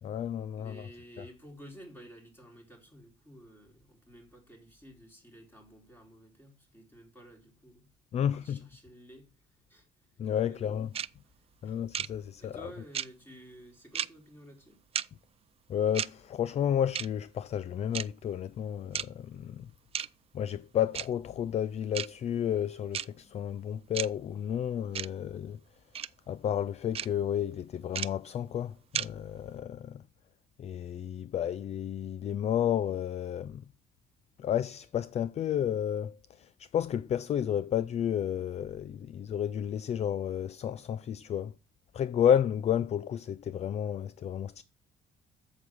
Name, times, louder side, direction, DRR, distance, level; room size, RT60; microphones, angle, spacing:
voice 1, 0.0-0.9 1.2-1.3 8.1-8.6 10.2-10.9 11.6-12.7 15.7-19.7 20.0-20.1 20.3-25.6 26.3-30.1 30.6-33.7 34.4-41.5 41.9-44.6, left 9 dB, 40° left, 0.4 m, -31 dB
voice 2, 0.5-7.9 8.2-9.3 9.7-10.1 10.5-10.7 11.6-11.8 12.4-14.8, equal, 15° left, 4.0 m, -52 dB
sound 1, 10.9-11.1 11.9-12.1 12.9-13.1 13.9-14.1 14.9-15.1 15.9-16.1 16.9-17.1 17.9-18.0 18.9-19.1 19.9-20.1 20.9-21.1 21.9-22.1 22.9-23.1 23.9-24.1 24.9-25.1 25.9-26.1 26.9-27.1 27.9-28.1 28.9-29.1, right 9 dB, 35° right, 0.4 m, -32 dB
8.2 x 7.3 x 6.2 m
cardioid pair, 110°, 17 cm